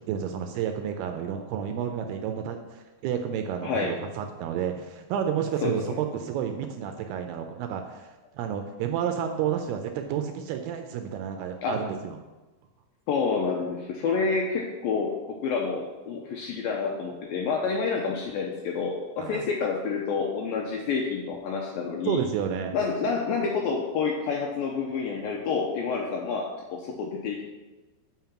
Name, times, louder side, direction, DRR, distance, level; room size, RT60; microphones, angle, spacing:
voice 1, 0.1-12.2 19.2-19.4 22.0-22.8, right 8 dB, 80° right, 5 dB, 2.3 m, -30 dB
voice 2, 3.6-4.0 5.6-6.0 11.6-11.8 13.1-22.2 22.7-27.5, left 5 dB, 80° left, 0 dB, 2.1 m, -28 dB
7.5 x 5.6 x 5.7 m, 1.2 s
omnidirectional pair, 4.9 m